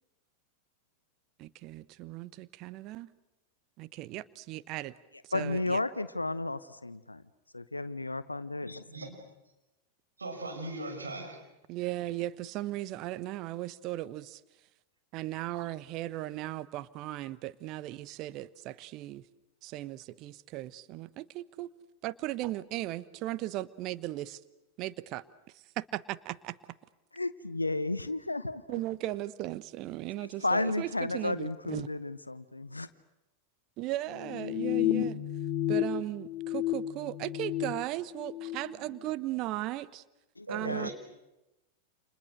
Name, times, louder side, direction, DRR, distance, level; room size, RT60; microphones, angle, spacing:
voice 1, 1.4-3.1 3.8-4.9 5.2-5.8 11.7-14.4 15.1-19.3 19.6-21.7 22.0-24.4 24.8-26.6 28.7-31.9 33.8-35.2 35.7-40.0 40.5-40.9, right 16 dB, 40° right, 16 dB, 1.0 m, -37 dB
voice 2, 5.3-7.2 7.5-9.1 27.1-28.8 30.2-32.9 40.4-40.9, left 2 dB, 85° left, 14 dB, 0.9 m, -33 dB
voice 3, 8.9-9.2 10.2-11.4 40.5-40.9, right 2 dB, 75° right, 3 dB, 6.1 m, -39 dB
sound 1, 34.1-35.8 36.1-37.7 38.1-38.6, left 13 dB, 50° left, 2.4 m, -31 dB
30.0 x 28.5 x 6.5 m, 0.96 s
figure-of-eight pair, 90°, 0 cm